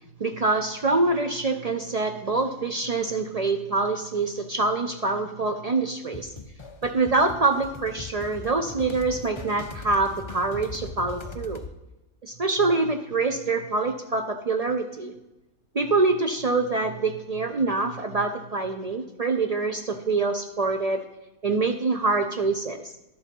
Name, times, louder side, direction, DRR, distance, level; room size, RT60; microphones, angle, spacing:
voice 1, 0.2-6.3 6.8-11.6 12.2-15.1 15.7-21.0 21.4-22.9, right 3 dB, 65° right, 6 dB, 0.3 m, -25 dB
sound 1, 6.1-11.7, left 4 dB, 50° left, 0.3 m, -40 dB
11.0 x 6.9 x 5.3 m, 0.96 s
omnidirectional pair, 1.5 m